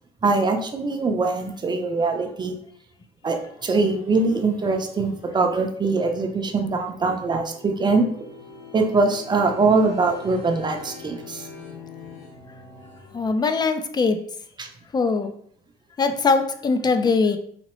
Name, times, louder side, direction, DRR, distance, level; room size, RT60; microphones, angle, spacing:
voice 1, 0.2-2.6 3.2-8.1 8.7-11.4 14.6-14.7, right 3 dB, 25° right, 4 dB, 0.6 m, -22 dB
sound 1, 3.2-13.3, left 4 dB, 70° left, 1.3 m, -44 dB
voice 2, 13.1-14.2 14.9-15.3 16.0-17.4, left 4 dB, 25° left, 8 dB, 0.4 m, -21 dB
4.2 x 2.8 x 3.0 m, 0.64 s
cardioid pair, 110°, 17 cm